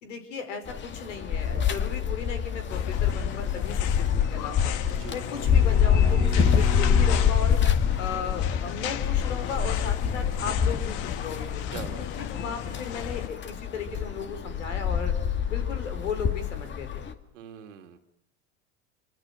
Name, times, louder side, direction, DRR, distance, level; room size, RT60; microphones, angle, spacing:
voice 1, 0.0-4.7 5.1-7.6 8.0-11.8 12.2-15.2 15.5-17.0, left 5 dB, 85° left, 8 dB, 5.4 m, -36 dB
sound 1, 0.7-17.1, left 8 dB, 30° left, 2.1 m, -26 dB
sound 2, 2.7-13.3, left 11 dB, 55° left, 1.7 m, -36 dB
Bowed string instrument, 4.0-7.4, right 5 dB, 20° right, 2.5 m, -38 dB
voice 2, 4.9-5.2 11.7-12.5 17.3-18.0, right 9 dB, 85° right, 6 dB, 3.0 m, -44 dB
27.0 x 25.0 x 7.7 m, 0.76 s
hypercardioid pair, 95°, 36 cm